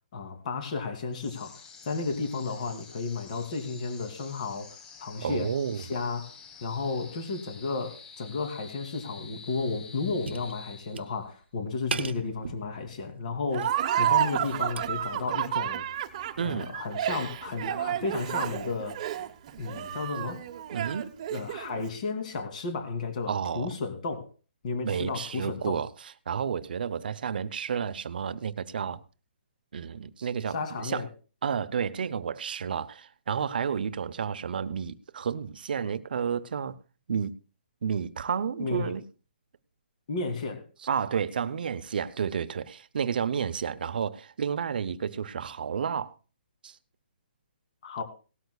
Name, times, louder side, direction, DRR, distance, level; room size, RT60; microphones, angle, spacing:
voice 1, 0.1-5.5 5.8-6.3 6.6-15.8 16.4-19.0 19.6-20.4 21.3-24.2 24.6-25.8 30.5-31.1 38.6-38.9 40.1-40.6 47.8-48.0, left 4 dB, 40° left, 2.9 m, -33 dB
sound 1, 1.1-11.3, left 5 dB, 15° left, 7.1 m, -49 dB
voice 2, 5.2-5.8 16.4-16.7 20.7-21.0 23.3-23.7 24.8-25.9 26.3-29.0 29.7-31.0 31.4-36.8 37.1-37.3 37.8-39.0 40.8-46.1 46.6-46.8, right 7 dB, 55° right, 0.8 m, -31 dB
sound 2, 8.4-8.7 9.1-9.2 9.5-11.4 11.9-13.2 13.5-14.8, right 5 dB, 90° right, 1.1 m, -39 dB
Laughter, 13.5-21.8, right 11 dB, 35° right, 1.1 m, -30 dB
18.0 x 13.0 x 2.4 m
hypercardioid pair, 160°, 6 cm